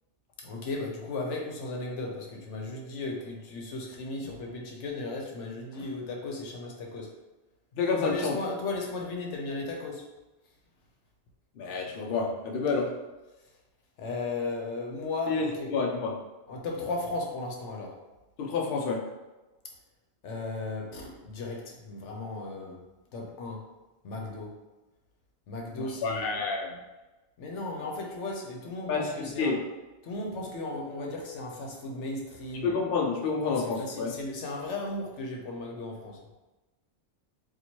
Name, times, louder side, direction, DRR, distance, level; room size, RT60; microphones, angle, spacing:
voice 1, 0.4-7.1 8.0-10.0 14.0-15.7 16.5-18.0 20.2-22.8 23.1-23.7 24.0-24.6 25.5-26.4 27.4-29.6 30.0-32.7 33.8-36.2, left 2 dB, 80° left, 0 dB, 1.0 m, -35 dB
voice 2, 7.8-8.4 11.6-13.0 15.3-16.1 18.4-19.1 25.7-26.8 28.9-29.6 32.5-34.1, left 4 dB, 60° left, 0 dB, 0.7 m, -29 dB
2.9 x 2.5 x 4.3 m, 1.1 s
omnidirectional pair, 1.2 m